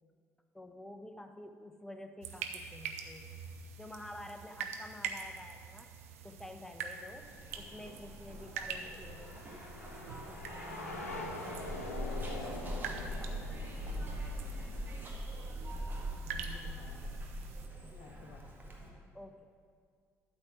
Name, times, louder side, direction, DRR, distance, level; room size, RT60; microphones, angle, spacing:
voice 1, 0.5-3.4 3.8-5.9 6.2-7.3 7.6-9.5 10.0-11.3 17.9-18.1 19.1-19.4, left 1 dB, 5° left, 6 dB, 0.8 m, -50 dB
sound 1, 2.2-17.7, right 7 dB, 75° right, 0.6 m, -46 dB
Zipper (clothing), 7.2-18.9, equal, 25° right, 1.9 m, -42 dB
sound 2, 7.3-15.1, left 2 dB, 85° left, 0.8 m, -45 dB
voice 2, 8.3-8.7 15.1-17.3 17.7-19.0, left 4 dB, 55° left, 5 dB, 0.9 m, -57 dB
12.0 x 4.4 x 7.3 m, 2.1 s
figure-of-eight pair, 45°, 8 cm